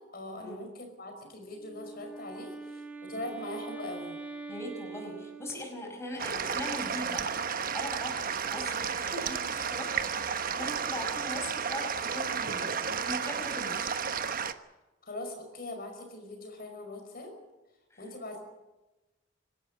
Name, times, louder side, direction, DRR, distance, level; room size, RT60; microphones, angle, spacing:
voice 1, 0.0-2.6 3.0-4.2 15.1-17.3 18.0-18.4, left 1 dB, 50° left, 4 dB, 5.2 m, -41 dB
Wind instrument woodwind instrument, 1.5-6.1, right 4 dB, 10° right, 2.3 m, -43 dB
voice 2, 4.5-7.3 7.7-13.9 17.9-18.1, left 1 dB, 15° left, 1 dB, 5.2 m, -40 dB
sound 1, 6.2-14.5, right 6 dB, 45° right, 1.1 m, -32 dB
25.5 x 12.5 x 9.4 m, 1.1 s
head